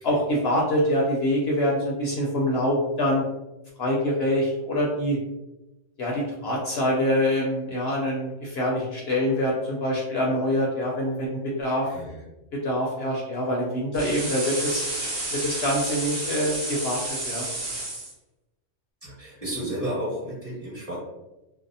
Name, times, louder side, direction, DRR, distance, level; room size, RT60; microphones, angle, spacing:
voice 1, 0.0-3.2 3.8-5.2 6.0-11.9 12.5-14.8 15.3-17.5, equal, 65° left, -3 dB, 0.7 m, -25 dB
voice 2, 11.8-12.2 19.0-21.0, equal, 30° right, -8 dB, 1.1 m, -32 dB
sound 1, 13.9-18.1, right 2 dB, 55° right, 0.9 m, -31 dB
2.6 x 2.0 x 2.6 m, 0.97 s
omnidirectional pair, 1.3 m